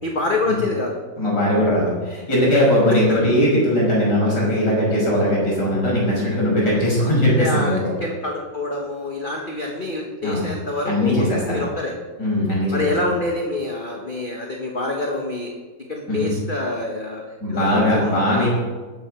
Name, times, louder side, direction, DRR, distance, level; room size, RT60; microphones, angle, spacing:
voice 1, 0.0-1.0 3.1-3.2 7.4-11.9 12.7-15.5 15.9-18.5, left 2 dB, 30° left, 0 dB, 1.2 m, -26 dB
voice 2, 1.2-7.9 10.2-10.5 10.8-11.6 12.2-12.9 16.1-16.3 17.4-18.5, left 1 dB, 60° left, -4 dB, 6.5 m, -19 dB
19.0 x 7.5 x 6.1 m, 1.4 s
omnidirectional pair, 2.1 m